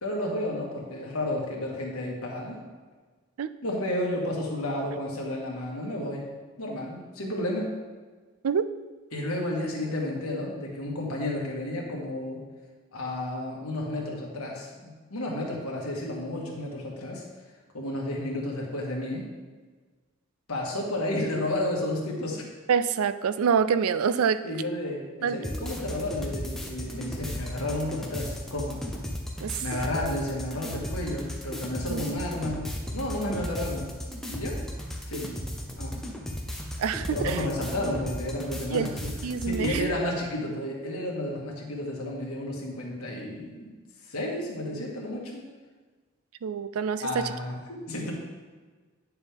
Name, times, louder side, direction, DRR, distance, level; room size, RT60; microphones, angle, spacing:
voice 1, 0.0-2.6 3.6-6.3 6.6-7.7 9.1-12.4 12.9-17.2 17.7-19.3 20.5-22.4 24.4-28.8 29.6-32.7 32.9-33.9 34.3-34.6 35.1-35.4 35.8-35.9 37.1-39.1 39.5-43.7 44.0-45.4 47.0-48.1, left 1 dB, 90° left, -1 dB, 1.8 m, -32 dB
voice 2, 22.7-24.4 25.2-25.4 29.4-29.6 31.9-32.2 36.8-37.4 38.7-38.9 39.2-39.9 46.4-47.3, right 6 dB, 85° right, 13 dB, 0.4 m, -26 dB
sound 1, 25.4-39.9, equal, ahead, 0.7 m, -35 dB
9.1 x 6.7 x 3.5 m, 1.4 s
head